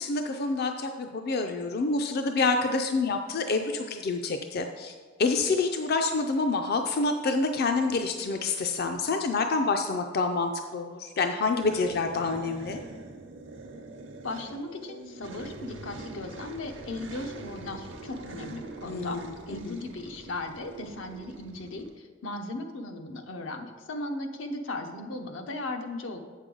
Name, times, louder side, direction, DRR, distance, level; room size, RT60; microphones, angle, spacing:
voice 1, 0.0-4.9 5.2-12.8 18.8-19.9, left 3 dB, 55° left, 5 dB, 0.4 m, -27 dB
sound 1, 11.6-21.9, right 2 dB, 70° right, 0.8 m, -44 dB
voice 2, 14.2-26.2, left 2 dB, 90° left, 5 dB, 0.7 m, -37 dB
8.2 x 6.4 x 3.8 m, 1.6 s
head